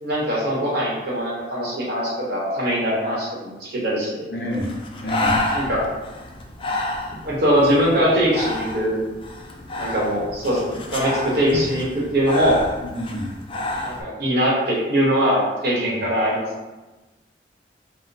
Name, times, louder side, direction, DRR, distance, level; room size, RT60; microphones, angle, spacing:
voice 1, 0.0-4.3 5.5-6.0 7.2-9.0 9.8-12.6 13.8-16.5, equal, 60° right, -5 dB, 1.0 m, -22 dB
voice 2, 4.3-4.8 5.0-5.4 12.8-13.3 15.6-15.9, left 1 dB, 65° left, -3 dB, 0.8 m, -28 dB
Breathing, 4.5-14.0, left 1 dB, 30° left, 0.3 m, -29 dB
2.7 x 2.0 x 3.9 m, 1.1 s
head